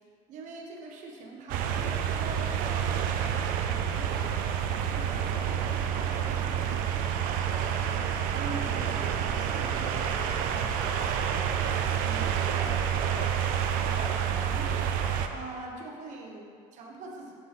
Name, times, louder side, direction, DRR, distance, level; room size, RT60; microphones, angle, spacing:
voice 1, 0.3-4.4 4.8-14.7 15.3-17.3, right 3 dB, 60° right, -1 dB, 1.2 m, -43 dB
sound 1, 1.5-15.3, right 8 dB, 75° right, 0.5 m, -28 dB
7.8 x 4.5 x 4.1 m, 2.3 s
cardioid pair, 120°, 14 cm